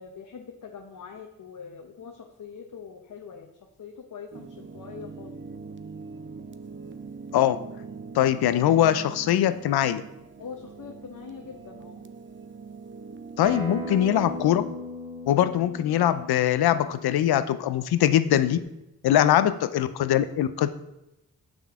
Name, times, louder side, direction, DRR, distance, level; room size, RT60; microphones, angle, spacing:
voice 1, 0.0-3.5 3.8-5.4 10.4-12.0, left 6 dB, 55° left, 2 dB, 0.9 m, -43 dB
sound 1, 4.3-14.6, right 4 dB, 30° right, 0.6 m, -42 dB
voice 2, 8.1-10.0 13.4-14.6 15.3-18.6 19.0-20.7, left 11 dB, 80° left, 12 dB, 0.6 m, -22 dB
Acoustic guitar, 13.4-18.6, left 1 dB, 80° right, 2.2 m, -38 dB
7.0 x 5.8 x 3.6 m, 0.91 s
cardioid pair, 50°, 37 cm